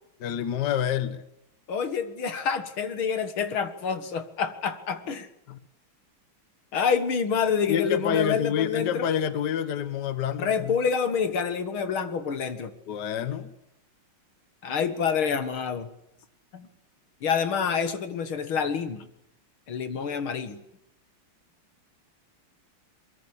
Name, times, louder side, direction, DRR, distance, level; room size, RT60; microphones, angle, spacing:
voice 1, 0.2-1.2 5.5-5.6 7.7-10.8 12.9-13.5, left 9 dB, 55° left, 12 dB, 1.6 m, -28 dB
voice 2, 1.7-5.3 6.7-9.1 10.4-12.7 14.6-15.9 16.5-16.7 17.2-19.0 19.7-20.6, left 6 dB, 75° left, 10 dB, 2.6 m, -27 dB
24.0 x 22.0 x 8.7 m, 0.82 s
omnidirectional pair, 2.3 m